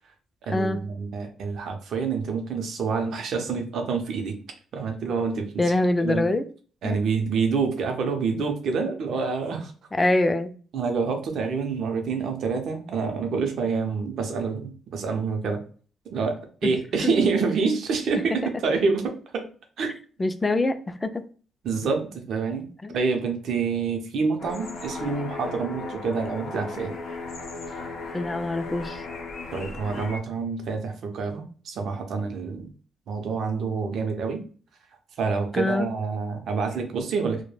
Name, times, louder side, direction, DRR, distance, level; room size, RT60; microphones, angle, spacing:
voice 1, 0.5-4.4 4.7-5.5 6.0-6.3 6.8-9.7 10.7-15.6 16.1-19.5 19.8-19.9 21.6-22.7 22.9-26.9 29.5-32.7 33.1-34.4 35.2-37.4, right 5 dB, 70° right, 4 dB, 0.5 m, -27 dB
voice 2, 5.6-6.4 6.8-7.0 10.0-10.5 16.6-16.7 17.0-17.1 20.2-21.1 22.8-23.0 28.1-29.0 35.5-35.9, left 2 dB, 20° left, 10 dB, 0.3 m, -24 dB
sound 1, 24.4-30.2, left 3 dB, 80° left, 0.6 m, -36 dB
2.2 x 2.1 x 3.1 m, 0.40 s
cardioid pair, 90°, 0 cm